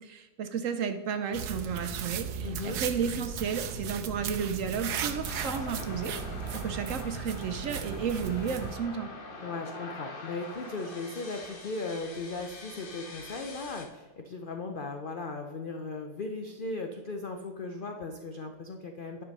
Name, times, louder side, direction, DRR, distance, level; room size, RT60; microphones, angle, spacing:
voice 1, 0.0-6.1 6.5-9.1, right 6 dB, 65° right, 8 dB, 0.9 m, -33 dB
sound 1, 1.3-8.8, right 7 dB, 85° right, 1.3 m, -36 dB
voice 2, 2.4-2.8 9.4-19.2, left 3 dB, 65° left, 4 dB, 0.5 m, -37 dB
sound 2, 5.2-13.9, left 3 dB, 40° left, 1.2 m, -44 dB
9.9 x 6.0 x 5.3 m, 1.3 s
omnidirectional pair, 1.7 m